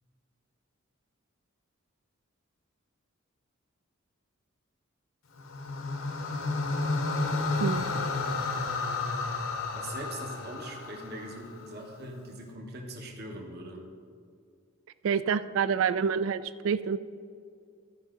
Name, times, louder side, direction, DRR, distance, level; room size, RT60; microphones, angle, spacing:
sound 1, 5.4-11.7, left 3 dB, 70° left, 0.9 m, -31 dB
voice 1, 9.7-13.8, right 1 dB, 50° right, 1 dB, 1.2 m, -41 dB
voice 2, 15.0-17.0, right 6 dB, 70° right, 14 dB, 0.3 m, -27 dB
14.0 x 5.4 x 3.8 m, 2.2 s
head